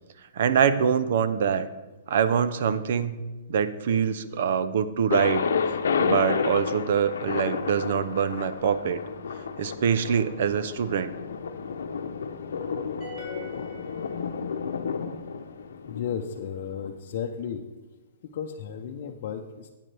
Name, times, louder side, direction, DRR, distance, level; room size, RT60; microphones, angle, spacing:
voice 1, 0.3-1.7 2.1-3.2 3.5-5.4 6.0-9.0 9.6-11.1, right 7 dB, 60° right, 13 dB, 0.6 m, -24 dB
Thunder, 5.1-16.9, left 6 dB, 85° left, 0.8 m, -31 dB
sound 1, 13.0-14.7, left 3 dB, 30° right, 3.6 m, -41 dB
voice 2, 15.9-17.6 18.3-19.7, left 8 dB, 50° left, 0 dB, 0.7 m, -34 dB
12.0 x 9.1 x 3.4 m, 1.2 s
hypercardioid pair, 155°, 0 cm